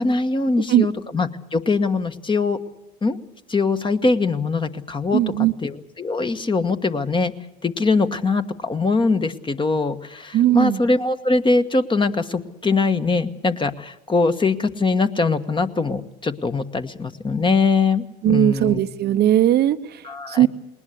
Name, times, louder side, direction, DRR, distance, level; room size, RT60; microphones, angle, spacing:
voice 1, 0.0-2.6 3.0-3.2 3.5-5.2 5.6-7.3 7.6-18.8 20.0-20.5, left 3 dB, 25° left, 9 dB, 1.4 m, -22 dB
voice 2, 5.1-5.5 10.3-10.8 18.2-20.0 20.3-20.5, right 12 dB, 50° right, 10 dB, 0.8 m, -18 dB
20.0 x 19.5 x 8.3 m, 0.93 s
hypercardioid pair, 75°, 21 cm